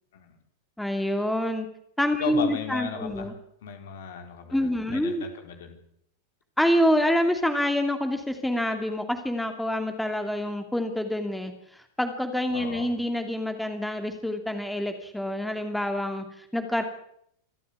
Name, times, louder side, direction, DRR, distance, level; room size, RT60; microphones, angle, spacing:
voice 1, 0.8-1.7 2.0-3.3 4.5-5.2 6.6-16.8, left 1 dB, 5° left, 6 dB, 2.6 m, -27 dB
voice 2, 2.2-3.3 3.6-5.8 12.5-12.9, left 7 dB, 60° left, 4 dB, 4.4 m, -36 dB
26.5 x 14.0 x 8.7 m, 0.70 s
figure-of-eight pair, 90°, 0 cm